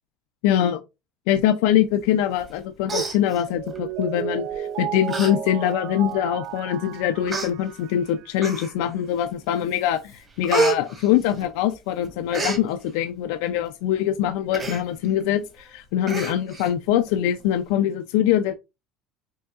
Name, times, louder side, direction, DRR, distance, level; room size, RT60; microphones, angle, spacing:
voice 1, 0.4-0.8 1.3-18.6, left 11 dB, 85° left, 0.4 m, -23 dB
Human voice, 2.4-2.6 2.9-3.8 4.5-4.7 5.1-5.3 5.7-5.8 6.6-6.7 7.3-7.5 8.4-8.9 9.4-9.8 10.1-11.8 12.0-12.6 14.5-14.8 15.2-15.3 15.6-15.7 16.1-16.7 17.1-17.2, right 3 dB, 25° right, 1.3 m, -28 dB
Mallet percussion, 3.5-8.4, right 10 dB, 60° right, 0.3 m, -33 dB
5.4 x 2.7 x 2.4 m
cardioid pair, 145°, 0 cm